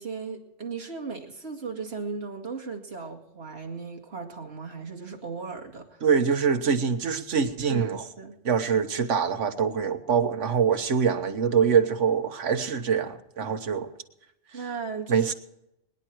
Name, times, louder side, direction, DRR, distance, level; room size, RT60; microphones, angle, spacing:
voice 1, 0.0-6.0 7.7-8.4 13.5-13.6 14.5-15.3, right 5 dB, 60° right, 1 dB, 2.4 m, -36 dB
voice 2, 6.0-8.0 8.4-13.9 15.1-15.3, right 6 dB, 75° right, 6 dB, 1.5 m, -24 dB
23.0 x 10.5 x 4.6 m, 0.84 s
omnidirectional pair, 1.2 m